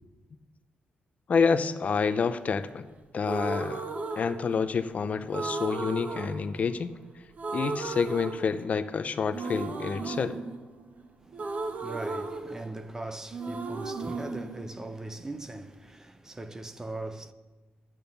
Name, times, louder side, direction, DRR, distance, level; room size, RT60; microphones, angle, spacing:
voice 1, 1.3-2.8 3.1-3.9 4.2-6.9 7.5-10.3, left 5 dB, 45° left, 0.6 m, -28 dB
sound 1, 3.2-4.9 5.3-7.1 7.4-8.9 9.3-13.0 13.3-15.4, right 3 dB, 45° right, 1.1 m, -35 dB
voice 2, 11.2-17.3, right 2 dB, 15° right, 0.6 m, -40 dB
12.5 x 8.7 x 6.9 m
cardioid pair, 100°, 3 cm